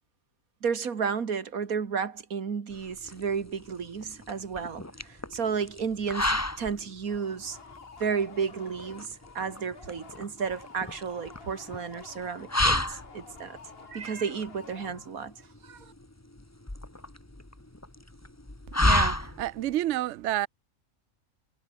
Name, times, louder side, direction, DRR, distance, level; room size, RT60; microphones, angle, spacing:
voice 1, 0.6-7.6 8.0-13.6 13.9-15.3 15.6-15.9, right 6 dB, 85° right, 2.2 m, -32 dB
sound 1, 2.7-19.7, left 1 dB, 10° left, 1.7 m, -32 dB
sound 2, 7.1-15.4, left 5 dB, 45° left, 1.6 m, -50 dB
voice 2, 18.8-20.5, right 14 dB, 65° right, 0.8 m, -29 dB
omnidirectional pair, 1.5 m